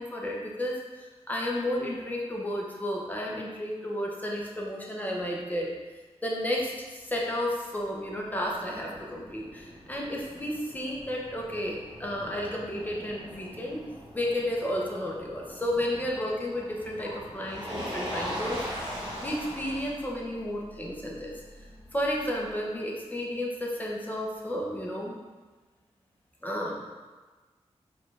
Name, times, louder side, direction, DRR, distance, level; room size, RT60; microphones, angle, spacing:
voice 1, 0.0-5.7 6.2-13.8 14.1-21.6 21.9-25.2 26.4-26.8, left 1 dB, 15° left, -2 dB, 0.7 m, -32 dB
Motor vehicle (road), 7.6-22.5, equal, 40° right, 1.2 m, -41 dB
4.2 x 2.4 x 3.2 m, 1.3 s
wide cardioid pair, 80°, 11 cm